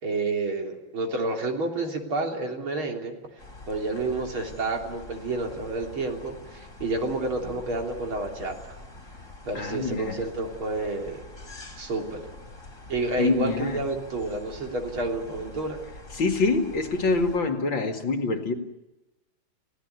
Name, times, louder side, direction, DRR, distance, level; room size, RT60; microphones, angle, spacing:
voice 1, 0.0-3.2 3.7-8.8 9.5-11.2 11.8-12.3 12.9-15.8, right 2 dB, 80° right, 2 dB, 4.3 m, -30 dB
sound 1, 3.4-17.4, left 2 dB, 35° left, 5.6 m, -45 dB
voice 2, 9.5-10.2 13.2-13.8 16.1-18.5, left 3 dB, 65° left, 5 dB, 3.0 m, -25 dB
30.0 x 17.0 x 9.6 m, 1.0 s
omnidirectional pair, 2.3 m